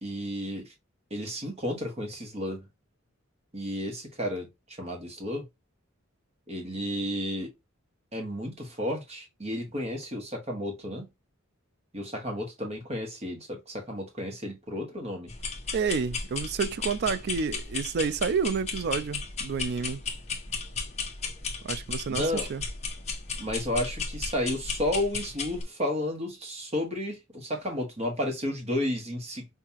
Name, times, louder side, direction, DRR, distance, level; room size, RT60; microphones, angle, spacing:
voice 1, 0.0-0.7 1.1-2.7 3.5-5.4 6.5-7.5 8.1-11.1 11.9-15.3 22.1-22.5 23.4-29.5, left 1 dB, 30° right, 1.5 m, -32 dB
sound 1, 15.3-25.6, left 4 dB, 30° left, 1.0 m, -35 dB
voice 2, 15.7-20.0 21.6-22.6, right 5 dB, 50° right, 0.4 m, -29 dB
5.6 x 2.8 x 2.9 m
head